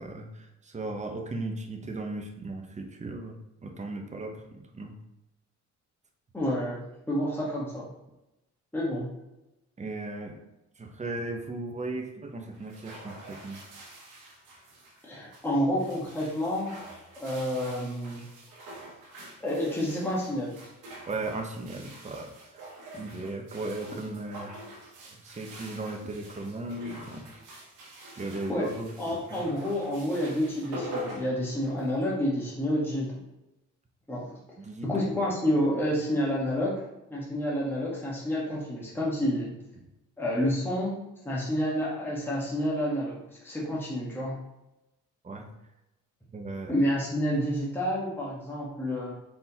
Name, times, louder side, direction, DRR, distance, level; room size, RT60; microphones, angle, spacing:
voice 1, 0.0-5.0 9.8-10.4 10.8-13.6 21.1-22.6 22.9-24.5 25.1-27.3 28.2-29.4 34.6-35.1 39.8-39.9 45.2-45.5 46.3-46.7, right 2 dB, 25° right, 3 dB, 0.7 m, -37 dB
voice 2, 6.3-7.9 8.7-9.1 15.0-16.8 17.2-18.2 19.4-20.6 28.5-28.7 29.0-33.1 34.1-34.4 34.8-36.8 37.1-39.6 40.2-44.4 46.7-49.1, equal, 5° left, -6 dB, 1.2 m, -29 dB
sound 1, 12.5-32.1, right 1 dB, 90° right, 1.0 m, -45 dB
4.3 x 3.5 x 2.8 m, 0.94 s
cardioid pair, 90°, 30 cm